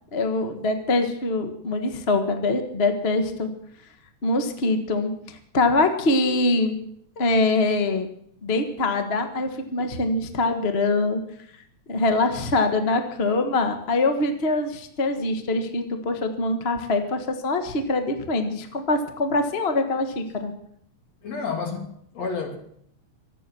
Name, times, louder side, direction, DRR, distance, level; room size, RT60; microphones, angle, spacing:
voice 1, 0.1-3.5 4.2-6.7 7.2-8.1 8.4-11.2 11.9-20.5, left 2 dB, 30° left, 1.1 m, -24 dB
voice 2, 21.2-22.6, left 5 dB, 55° left, 3.7 m, -30 dB
24.5 x 9.2 x 6.1 m
omnidirectional pair, 3.6 m